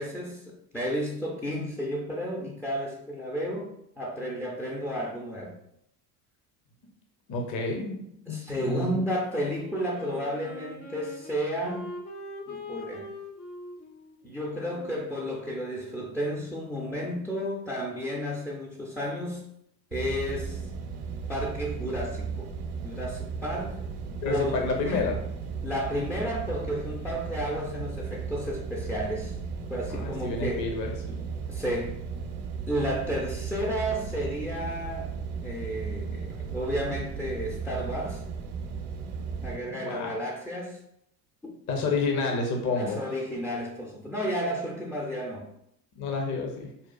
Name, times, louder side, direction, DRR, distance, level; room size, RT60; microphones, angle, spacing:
voice 1, 0.0-3.7 4.0-5.6 8.3-11.9 12.5-13.1 14.2-19.5 19.9-20.6 21.3-22.5 22.8-23.9 24.3-24.6 24.8-25.1 25.6-29.3 29.7-30.7 31.5-31.9 32.7-35.1 35.4-38.2 39.4-40.8 41.4-41.5 42.7-45.5, equal, 5° left, -3 dB, 0.4 m, -32 dB
voice 2, 7.3-8.0 8.3-9.0 24.2-25.2 29.9-31.1 39.7-40.1 41.7-43.0 46.0-46.7, left 3 dB, 35° left, 2 dB, 0.7 m, -29 dB
Wind instrument woodwind instrument, 9.5-16.2, left 2 dB, 65° left, 1.0 m, -43 dB
sound 1, 19.9-39.6, right 5 dB, 60° right, 0.7 m, -36 dB
5.0 x 2.3 x 2.2 m, 0.76 s
hypercardioid pair, 65°, 50 cm